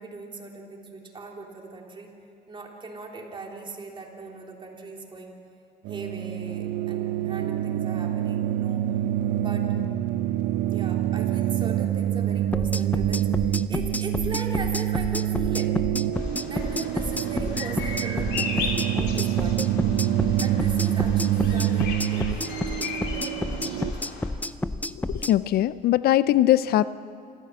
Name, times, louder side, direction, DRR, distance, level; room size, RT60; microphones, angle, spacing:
voice 1, 0.0-2.1 2.5-5.4 5.9-8.8 9.4-9.8 10.7-15.8 16.5-19.8 20.4-24.1, right 3 dB, 30° right, 0 dB, 3.6 m, -39 dB
sound 1, 5.8-23.9, right 12 dB, 80° right, 0.8 m, -26 dB
sound 2, 12.5-25.3, left 2 dB, 10° left, 0.5 m, -30 dB
Bird vocalization bird call bird song, 16.1-24.3, left 4 dB, 80° left, 3.0 m, -36 dB
voice 2, 24.9-26.9, left 13 dB, 65° left, 16 dB, 0.5 m, -21 dB
26.0 x 14.5 x 7.5 m, 2.6 s
cardioid pair, 110°, 17 cm